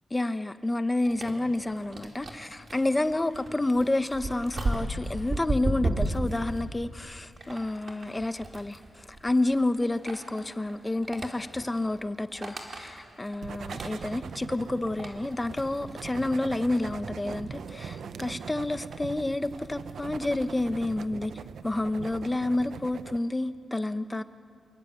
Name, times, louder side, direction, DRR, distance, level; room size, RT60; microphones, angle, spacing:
voice 1, 0.1-21.3 21.6-24.2, left 2 dB, 15° left, 11 dB, 0.9 m, -29 dB
sound 1, 1.0-20.9, right 2 dB, 40° right, 4.1 m, -37 dB
sound 2, 13.4-23.2, right 6 dB, 75° right, 0.8 m, -41 dB
27.5 x 22.5 x 9.2 m, 2.3 s
wide cardioid pair, 105°, 0 cm